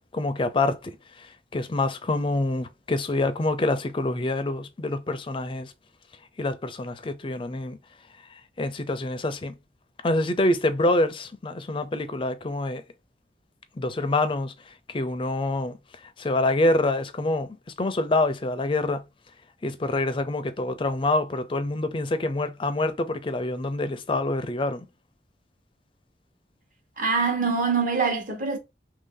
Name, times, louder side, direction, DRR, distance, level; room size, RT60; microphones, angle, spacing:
voice 1, 0.1-0.9 1.2-1.3 1.5-5.7 6.4-7.8 8.6-9.6 10.0-12.8 13.8-14.5 14.9-15.7 16.2-17.5 17.8-19.0 19.6-24.9, left 2 dB, 30° left, 0.4 m, -26 dB
voice 2, 27.0-28.6, right 5 dB, 45° right, 1.0 m, -24 dB
3.0 x 2.6 x 3.7 m
head